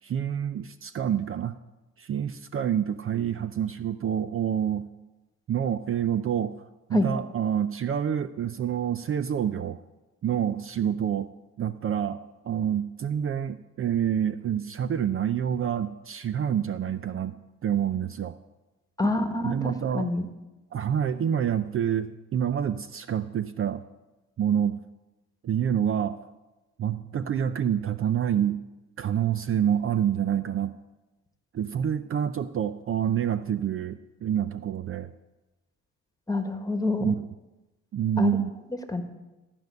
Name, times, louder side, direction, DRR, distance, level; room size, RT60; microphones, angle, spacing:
voice 1, 0.0-1.6 2.0-4.8 5.5-6.5 6.9-9.8 10.2-11.3 11.6-18.3 19.0-19.1 19.4-20.1 20.7-23.8 24.4-24.8 25.4-26.2 26.8-28.6 29.0-30.7 31.5-35.1 37.0-37.2 37.9-38.5, right 9 dB, 45° right, 12 dB, 0.5 m, -27 dB
voice 2, 19.0-19.6 19.9-20.3 36.3-37.1 38.2-38.4 38.9-39.0, left 2 dB, 10° left, 7 dB, 1.4 m, -26 dB
14.0 x 5.3 x 9.4 m, 1.1 s
cardioid pair, 90°, 30 cm